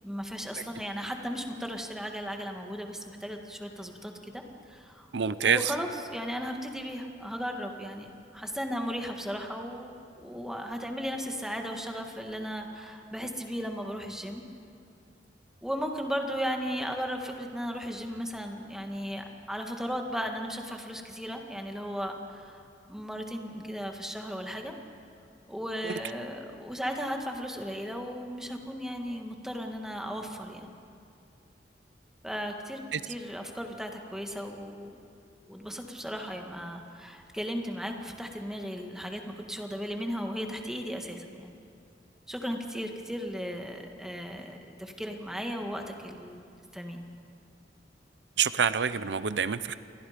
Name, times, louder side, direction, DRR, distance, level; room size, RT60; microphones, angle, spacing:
voice 1, 0.0-4.4 4.7-14.4 15.6-24.7 25.5-30.7 32.2-32.8 33.1-35.0 35.5-39.2 39.5-41.5 42.3-46.4 46.7-47.0, equal, 5° right, 3 dB, 1.8 m, -36 dB
voice 2, 5.1-5.6 25.8-25.9 32.9-33.0 48.4-49.8, right 7 dB, 90° right, 14 dB, 0.7 m, -26 dB
29.0 x 22.0 x 5.2 m, 2.4 s
head